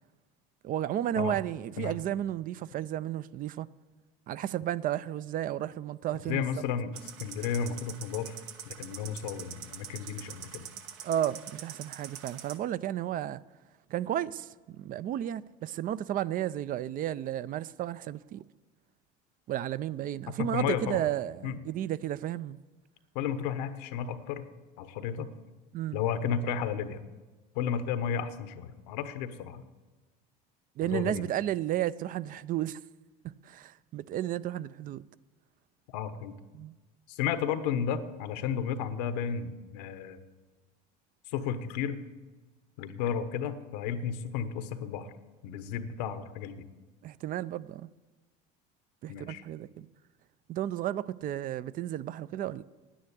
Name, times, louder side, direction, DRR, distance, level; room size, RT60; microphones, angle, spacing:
voice 1, 0.6-3.7 4.3-6.5 11.0-13.4 13.9-18.4 19.5-22.6 25.7-26.0 30.8-32.8 33.4-35.1 36.5-36.7 47.0-47.9 49.0-49.9 50.5-52.6, right 12 dB, 45° right, 0.4 m, -33 dB
voice 2, 6.3-8.4 8.7-10.6 20.3-21.0 21.4-21.6 23.1-24.4 24.8-25.3 25.9-27.0 27.5-29.6 30.8-31.2 35.9-36.3 37.1-40.2 41.3-42.0 42.8-45.1 45.4-46.7 49.1-49.4, left 7 dB, 80° left, 1.1 m, -33 dB
sound 1, 6.9-12.6, right 9 dB, 75° right, 1.2 m, -45 dB
10.0 x 9.6 x 8.3 m
supercardioid pair, 105°, 21 cm